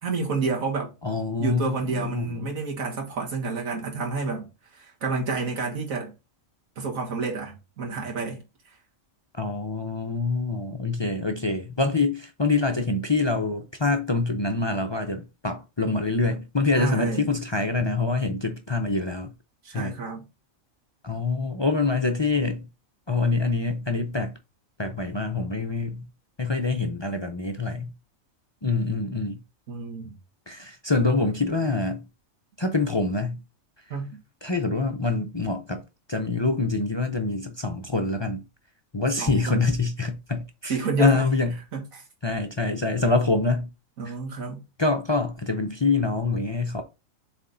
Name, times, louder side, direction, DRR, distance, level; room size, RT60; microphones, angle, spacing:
voice 1, 0.0-0.9 1.4-4.5 4.7-6.1 6.8-8.4 16.7-17.3 19.6-20.2 29.7-30.1 33.9-34.2 39.2-39.7 40.7-41.3 41.7-42.0 44.0-44.6, right 4 dB, 80° right, 2.0 m, -29 dB
voice 2, 1.0-2.5 9.3-19.3 19.7-20.0 21.0-22.7 23.1-24.4 24.8-26.1 26.4-27.9 28.6-29.4 30.5-32.1 32.6-33.4 34.4-35.8 36.1-38.4 38.9-41.6 42.2-43.7 44.1-44.2 44.8-46.8, left 3 dB, 40° left, 0.3 m, -25 dB
7.4 x 3.5 x 3.9 m
omnidirectional pair, 1.4 m